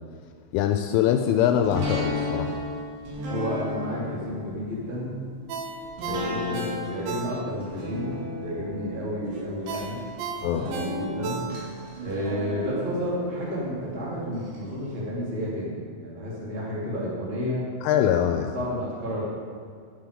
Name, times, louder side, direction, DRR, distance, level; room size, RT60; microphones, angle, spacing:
voice 1, 0.5-2.5 10.4-10.7 17.8-18.6, left 10 dB, 85° left, 5 dB, 2.9 m, -23 dB
sound 1, 1.6-14.6 15.0-15.1, left 1 dB, 65° right, 4.3 m, -35 dB
voice 2, 3.3-5.2 6.0-8.1 8.4-10.0 10.4-11.4 12.0-17.6 18.3-19.3, equal, 25° right, -6 dB, 1.4 m, -31 dB
Ringtone, 5.5-7.8 8.1-8.2 9.7-11.9 12.3-12.4, right 6 dB, 85° right, 3.3 m, -35 dB
11.5 x 7.6 x 5.0 m, 2.1 s
omnidirectional pair, 5.6 m